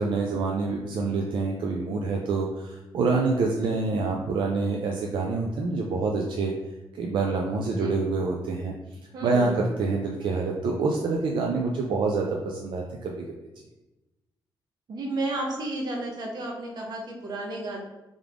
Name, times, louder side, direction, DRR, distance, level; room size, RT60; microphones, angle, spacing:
voice 1, 0.0-6.5 6.9-8.7 9.2-13.2, right 3 dB, 70° right, 0 dB, 0.4 m, -26 dB
voice 2, 7.6-8.0 9.1-9.7 14.9-17.8, right 2 dB, 50° right, -1 dB, 0.9 m, -32 dB
3.5 x 3.5 x 3.4 m, 1.0 s
wide cardioid pair, 180°, 9 cm